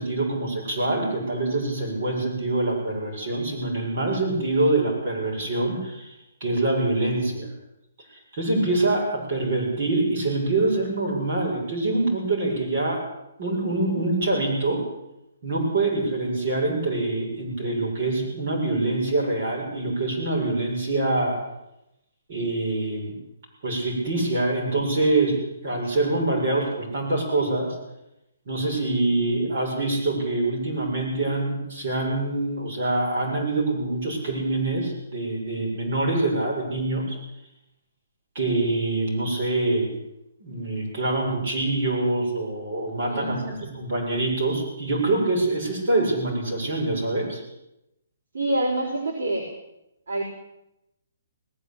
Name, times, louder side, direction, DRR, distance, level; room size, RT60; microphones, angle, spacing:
voice 1, 0.0-6.1 6.4-7.5 8.3-13.0 13.4-14.8 15.4-21.4 22.3-23.2 23.6-27.8 28.5-37.2 38.3-39.9 40.4-47.4, right 2 dB, 35° right, -3 dB, 7.5 m, -25 dB
voice 2, 43.1-43.6 48.3-49.5 50.1-50.2, right 1 dB, 65° right, -2 dB, 4.9 m, -26 dB
19.5 x 15.0 x 8.8 m, 0.87 s
hypercardioid pair, 180°, 0 cm